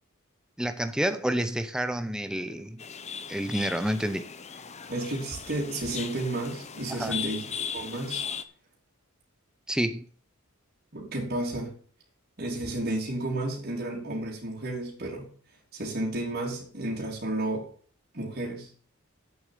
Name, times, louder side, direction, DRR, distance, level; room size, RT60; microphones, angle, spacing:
voice 1, 0.6-2.8 3.3-4.3 6.9-7.2 9.7-10.1, right 1 dB, 5° right, 9 dB, 0.8 m, -29 dB
sound 1, 2.8-8.4, left 7 dB, 30° left, 0.8 m, -38 dB
voice 2, 4.9-7.4 7.7-8.2 10.9-11.7 12.4-15.3 15.7-17.7 18.1-18.7, right 1 dB, 45° right, -3 dB, 3.4 m, -32 dB
8.7 x 6.8 x 7.5 m, 0.43 s
head